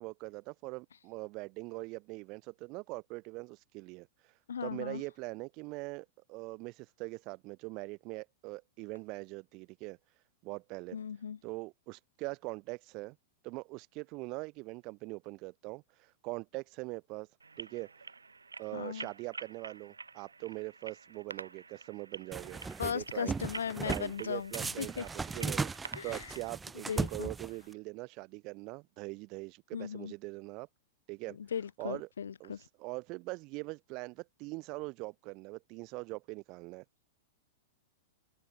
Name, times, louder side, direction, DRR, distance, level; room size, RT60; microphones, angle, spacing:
voice 1, 0.0-4.1 4.6-10.0 10.4-11.0 11.4-13.2 13.4-17.3 17.6-17.9 18.6-23.4 23.8-30.7 31.1-31.4 31.8-32.1 32.4-32.5 32.8-36.8, right 25 dB, 40° right, 2.1 m, -42 dB
voice 2, 4.5-5.0 10.9-11.4 18.7-19.1 22.8-25.1 25.9-26.4 26.9-27.3 29.7-30.1 31.3-32.7, left 7 dB, 75° left, 1.1 m, -38 dB
sound 1, 17.4-26.5, right 4 dB, 85° right, 7.9 m, -48 dB
sound 2, 22.3-22.9 23.3-24.1 24.5-27.7, right 4 dB, 10° right, 0.5 m, -37 dB
open air
figure-of-eight pair, 100°, 0 cm